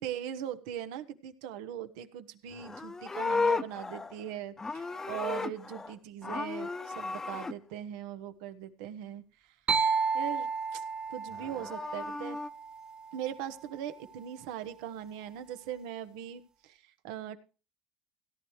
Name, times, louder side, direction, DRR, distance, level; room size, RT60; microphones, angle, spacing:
voice 1, 0.0-9.2 10.1-10.8 11.1-12.4 13.1-17.4, right 10 dB, 80° right, 9 dB, 1.2 m, -40 dB
Livestock farm animals working animals, 2.5-5.9 6.2-7.5 11.3-12.5, left 3 dB, 15° left, 0.8 m, -34 dB
sound 1, 9.7-13.4, right 5 dB, 30° right, 1.0 m, -32 dB
17.0 x 10.0 x 3.2 m, 0.35 s
supercardioid pair, 105°, 3 cm